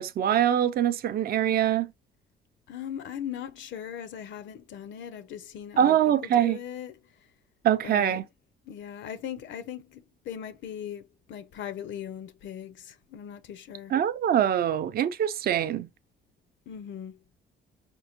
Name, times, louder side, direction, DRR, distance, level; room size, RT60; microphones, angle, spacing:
voice 1, 0.0-1.9 5.8-6.6 7.6-8.2 13.9-15.9, right 10 dB, 50° right, 0.4 m, -24 dB
voice 2, 2.7-7.0 7.8-8.2 8.7-13.9 16.7-17.2, left 9 dB, 70° left, 0.4 m, -39 dB
4.4 x 2.1 x 2.8 m
cardioid pair, 90°, 20 cm